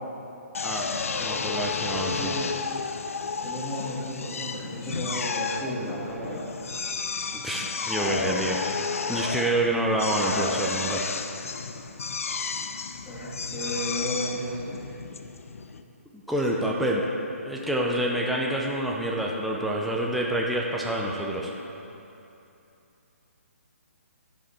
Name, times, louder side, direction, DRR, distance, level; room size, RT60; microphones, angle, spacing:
Drill, 0.5-15.8, left 5 dB, 70° left, 0.6 m, -32 dB
voice 1, 1.2-2.3 7.4-8.6 9.1-11.1 16.3-17.0 17.4-21.5, right 1 dB, ahead, -3 dB, 0.6 m, -27 dB
voice 2, 1.8-2.7 3.4-6.4 13.0-14.8, equal, 15° left, -7 dB, 2.4 m, -33 dB
16.0 x 5.6 x 4.4 m, 2.8 s
hypercardioid pair, 145°, 8 cm